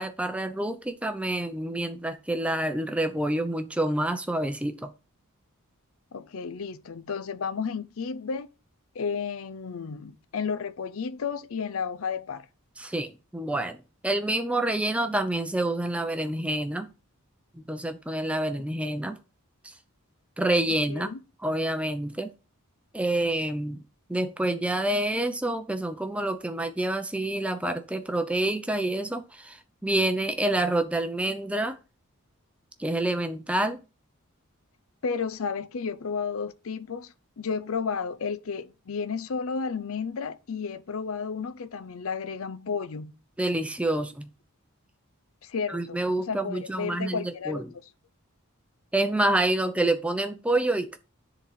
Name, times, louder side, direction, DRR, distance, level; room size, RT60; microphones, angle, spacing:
voice 1, 0.0-4.9 12.8-13.8 14.0-16.9 17.5-19.2 20.4-21.1 21.4-22.3 22.9-23.8 24.1-29.6 29.8-31.8 32.8-33.8 43.4-44.3 45.7-47.6 48.9-51.0, right 1 dB, 5° right, 0.6 m, -27 dB
voice 2, 6.1-8.5 8.9-12.5 20.9-21.2 35.0-43.1 45.4-47.6, left 5 dB, 65° left, 0.5 m, -32 dB
10.0 x 4.0 x 5.8 m
head